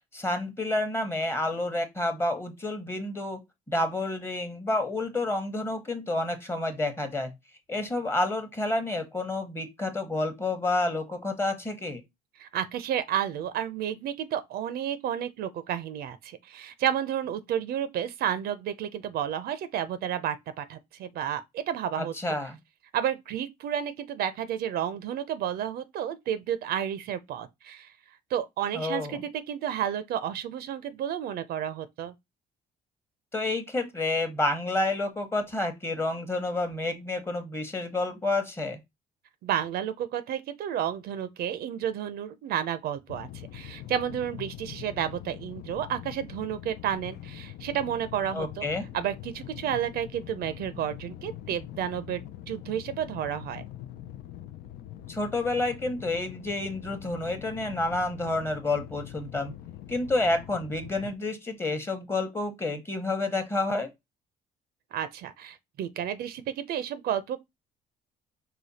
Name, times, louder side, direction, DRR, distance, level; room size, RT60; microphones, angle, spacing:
voice 1, 0.1-3.4 3.7-7.3 7.7-12.0 22.0-22.6 28.7-29.2 33.3-38.8 48.3-48.9 55.1-59.5 59.9-63.9, left 2 dB, 15° left, 1.0 m, -29 dB
voice 2, 12.4-22.1 22.9-27.9 28.3-32.1 39.4-48.7 48.9-53.6 64.9-67.4, right 9 dB, 65° right, 0.5 m, -31 dB
sound 1, 43.1-61.1, left 12 dB, 70° left, 0.5 m, -43 dB
5.0 x 2.2 x 4.1 m
cardioid pair, 110°, 17 cm